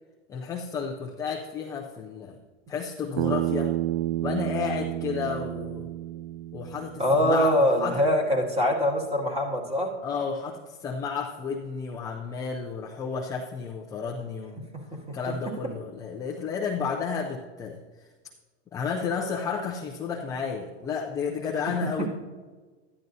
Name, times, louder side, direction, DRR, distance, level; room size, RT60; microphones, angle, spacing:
voice 1, 0.3-2.4 2.7-3.7 4.2-5.9 6.5-8.0 10.0-14.6 15.1-17.8 18.7-22.1, left 6 dB, 10° left, -1 dB, 0.3 m, -32 dB
Bass guitar, 3.2-7.4, right 14 dB, 80° right, 0.5 m, -30 dB
voice 2, 7.0-9.9 14.6-15.2 22.0-22.1, equal, 15° right, -1 dB, 2.0 m, -24 dB
13.5 x 10.5 x 2.7 m, 1.4 s
supercardioid pair, 135°, 37 cm